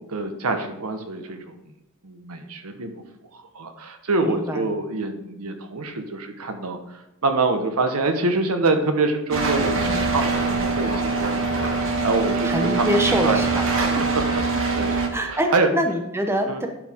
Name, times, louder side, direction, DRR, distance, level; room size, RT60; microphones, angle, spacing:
voice 1, 0.0-1.6 2.0-3.0 3.3-13.4 13.7-13.9 14.8-14.9 15.3-15.7 16.5-16.6, right 3 dB, 85° right, 6 dB, 1.1 m, -26 dB
voice 2, 4.1-4.7 12.4-13.5 14.0-14.1 15.1-16.7, equal, 10° right, 4 dB, 0.8 m, -24 dB
sound 1, 9.3-15.1, right 3 dB, 65° right, 1.2 m, -23 dB
11.0 x 4.7 x 3.6 m, 0.94 s
head